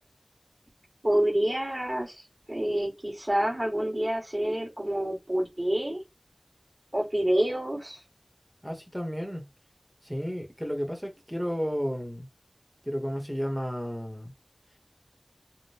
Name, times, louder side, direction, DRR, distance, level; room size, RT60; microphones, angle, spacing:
voice 1, 1.0-2.2 2.5-6.0 6.9-8.0, right 1 dB, 40° right, 1.8 m, -27 dB
voice 2, 8.6-9.5 10.0-12.3 12.8-14.3, equal, ahead, 1.1 m, -32 dB
3.6 x 2.2 x 2.8 m
wide cardioid pair, 40°, 0 cm